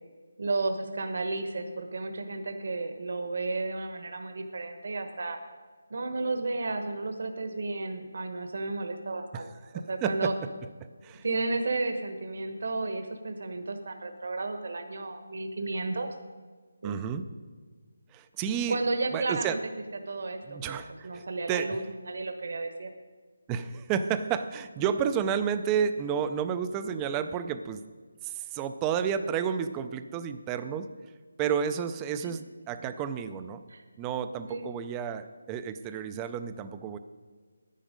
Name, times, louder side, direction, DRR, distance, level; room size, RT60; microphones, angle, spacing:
voice 1, 0.4-5.4 5.9-9.5 9.7-10.3 11.2-16.1 16.8-16.9 18.7-19.6 20.1-22.9 32.2-32.3 33.7-33.8 34.5-34.7, right 3 dB, 50° right, 6 dB, 1.1 m, -33 dB
voice 2, 9.7-10.3 10.8-11.2 16.8-17.3 18.1-18.8 19.1-19.6 20.5-21.8 23.5-27.8 28.2-30.9 31.4-33.6 34.0-37.0, right 7 dB, 10° right, 11 dB, 0.3 m, -31 dB
10.5 x 10.0 x 5.2 m, 1.5 s
figure-of-eight pair, 175°, 0 cm